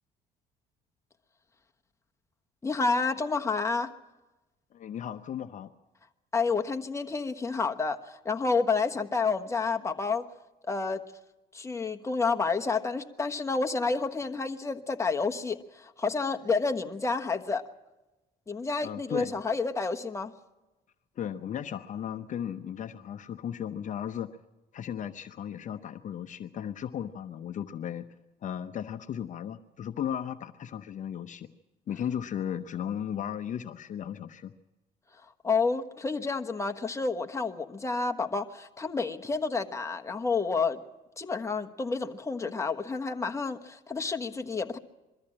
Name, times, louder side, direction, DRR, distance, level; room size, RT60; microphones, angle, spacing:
voice 1, 2.6-3.9 6.3-10.2 10.6-11.0 11.5-17.7 18.5-20.3 35.4-40.8 41.2-44.8, left 4 dB, 15° left, 5 dB, 1.3 m, -29 dB
voice 2, 4.7-5.7 18.8-19.4 21.2-24.3 24.7-28.1 28.4-31.5 31.9-34.5, left 9 dB, 50° left, 9 dB, 0.8 m, -35 dB
22.5 x 14.0 x 8.7 m, 1.1 s
cardioid pair, 110°, 17 cm